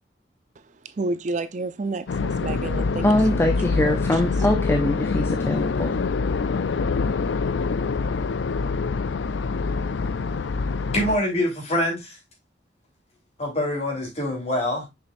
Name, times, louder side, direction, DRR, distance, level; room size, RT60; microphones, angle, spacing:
voice 1, 0.8-3.5 3.7-4.2, right 3 dB, 40° right, 0.4 m, -30 dB
sound 1, 2.1-11.2, left 4 dB, 80° left, 0.5 m, -25 dB
voice 2, 3.0-6.0, left 1 dB, 15° left, 0.6 m, -23 dB
voice 3, 10.9-12.2 13.4-14.9, left 1 dB, 35° left, 3.8 m, -25 dB
7.0 x 6.1 x 2.5 m
head